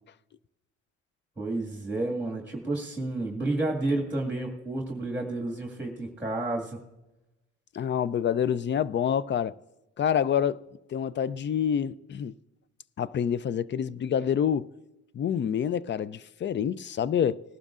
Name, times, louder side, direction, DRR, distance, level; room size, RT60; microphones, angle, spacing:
voice 1, 1.4-6.8, right 2 dB, 5° right, 1.9 m, -30 dB
voice 2, 7.7-9.6 10.0-10.6 10.9-12.3 13.0-14.7 15.1-17.4, left 8 dB, 40° left, 0.4 m, -27 dB
19.0 x 12.0 x 2.5 m
cardioid pair, 90°, 30 cm